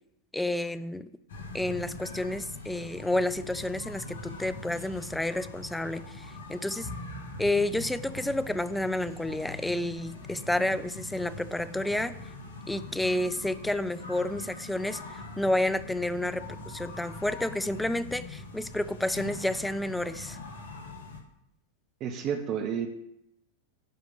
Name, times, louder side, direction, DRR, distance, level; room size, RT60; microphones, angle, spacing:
voice 1, 0.3-1.1 1.5-6.9 7.4-12.1 12.7-20.4, left 1 dB, 5° left, 13 dB, 0.5 m, -30 dB
sound 1, 1.3-21.2, left 2 dB, 65° left, 1.8 m, -42 dB
voice 2, 22.0-22.9, right 8 dB, 35° right, 6 dB, 1.2 m, -30 dB
11.0 x 4.9 x 8.0 m, 0.79 s
figure-of-eight pair, 90°, 0 cm